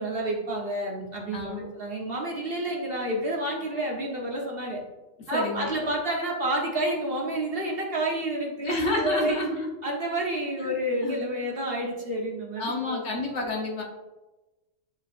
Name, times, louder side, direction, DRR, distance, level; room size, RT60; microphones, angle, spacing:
voice 1, 0.0-4.8 5.3-9.4 9.8-13.0, right 1 dB, 50° right, -1 dB, 1.2 m, -29 dB
voice 2, 1.3-1.6 5.3-5.7 8.6-9.7 10.6-10.7 11.0-11.3 12.6-13.8, left 2 dB, 65° left, -1 dB, 1.4 m, -29 dB
9.5 x 3.9 x 2.5 m, 1.1 s
omnidirectional pair, 1.3 m